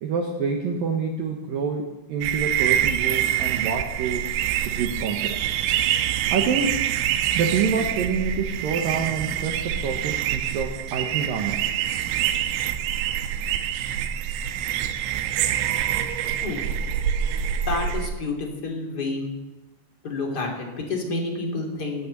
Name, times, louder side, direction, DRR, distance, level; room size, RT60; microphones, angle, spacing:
voice 1, 0.0-4.4 4.7-5.4 6.3-6.8 7.4-11.6, right 5 dB, 75° right, 3 dB, 2.1 m, -27 dB
sound 1, 2.2-18.1, right 10 dB, 90° right, 3.4 m, -26 dB
voice 2, 17.6-19.3 20.0-22.1, left 3 dB, 30° left, 1 dB, 2.3 m, -29 dB
19.0 x 8.8 x 8.1 m, 1.1 s
omnidirectional pair, 5.7 m